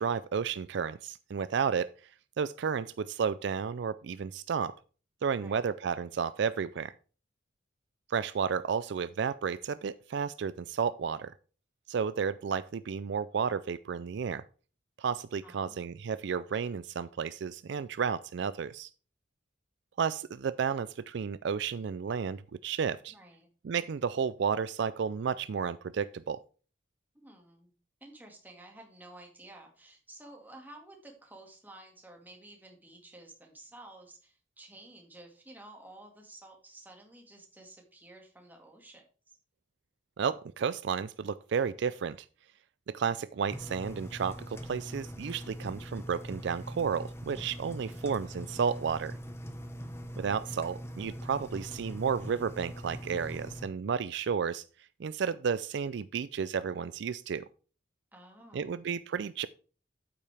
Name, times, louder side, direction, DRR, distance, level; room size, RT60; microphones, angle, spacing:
voice 1, 0.0-1.9 2.4-4.8 5.2-6.9 8.1-11.3 11.9-14.4 15.0-18.9 20.0-23.1 23.6-26.4 40.2-42.3 42.9-49.2 50.2-54.6 55.0-57.4 58.5-59.5, right 6 dB, 65° right, 16 dB, 0.4 m, -32 dB
voice 2, 5.3-5.7 15.4-15.9 23.1-23.5 27.1-27.7 28.0-39.0 47.8-48.1 58.1-58.8, right 1 dB, 10° right, 1 dB, 2.0 m, -52 dB
Engine, 43.5-53.6, equal, 15° left, 1.0 m, -42 dB
8.6 x 8.6 x 3.4 m, 0.37 s
head